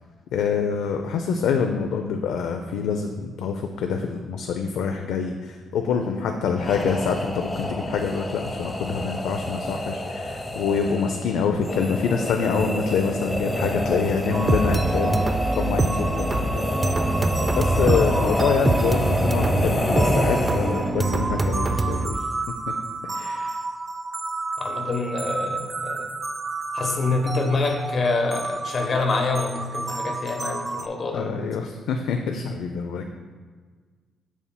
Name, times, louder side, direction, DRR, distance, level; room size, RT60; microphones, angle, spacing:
voice 1, 0.3-15.2 15.5-16.7 17.5-22.3 22.7-22.8 23.0-23.6 31.1-33.1, left 6 dB, 85° left, 4 dB, 0.4 m, -26 dB
sound 1, 6.5-21.1, left 1 dB, 20° left, 0.7 m, -27 dB
sound 2, 14.3-30.9, right 2 dB, 25° right, 0.4 m, -26 dB
voice 2, 24.6-26.1 26.7-31.4, left 3 dB, 45° left, 4 dB, 1.0 m, -26 dB
7.0 x 7.0 x 2.2 m, 1.5 s
cardioid pair, 90°, 0 cm